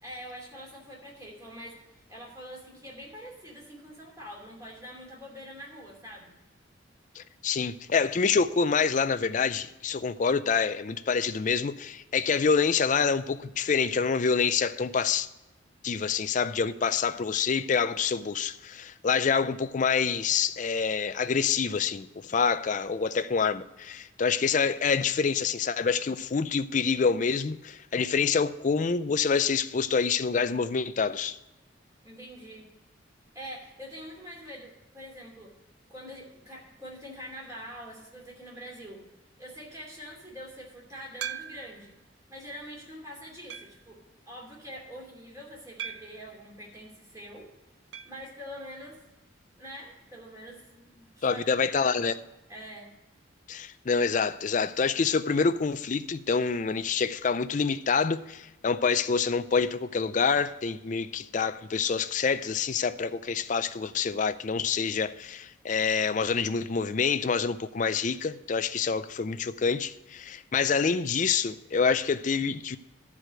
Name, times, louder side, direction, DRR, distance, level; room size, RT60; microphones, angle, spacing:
voice 1, 0.0-6.3 32.0-32.7 33.3-35.5 35.9-39.0 39.4-41.9 42.3-44.0 44.3-47.5 48.0-49.0 49.6-52.0 52.5-52.9, equal, 15° right, 2.7 m, -44 dB
voice 2, 7.2-15.3 15.8-31.4 51.2-52.1 53.5-72.8, left 5 dB, 40° left, 0.4 m, -27 dB
sound 1, 41.2-41.9 42.5-42.6 43.5-43.9 45.8-46.3 47.9-48.2 48.5-48.6 48.8-48.9 50.9-51.0, right 8 dB, 60° right, 0.4 m, -39 dB
12.0 x 4.9 x 7.5 m
head